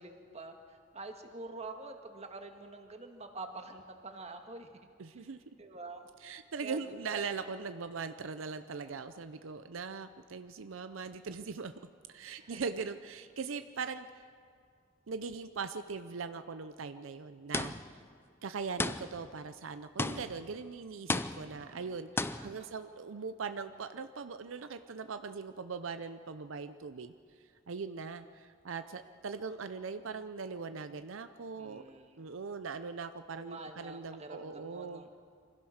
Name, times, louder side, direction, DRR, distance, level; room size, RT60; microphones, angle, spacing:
voice 1, 0.0-4.8 5.1-5.2 5.6-6.1 6.6-7.3 12.4-12.7 21.3-22.0 22.4-22.7 31.5-32.2 33.3-35.1, right 3 dB, 35° right, 5 dB, 1.6 m, -47 dB
voice 2, 5.0-5.4 6.2-11.7 12.1-14.3 15.1-18.0 18.4-27.1 27.7-31.8 32.2-35.0, right 5 dB, 85° right, 10 dB, 0.6 m, -40 dB
sound 1, 17.5-18.0 18.8-19.3 20.0-20.5 21.1-21.7 22.2-22.6, left 2 dB, 10° left, 0.4 m, -34 dB
25.0 x 16.0 x 6.5 m, 2.2 s
head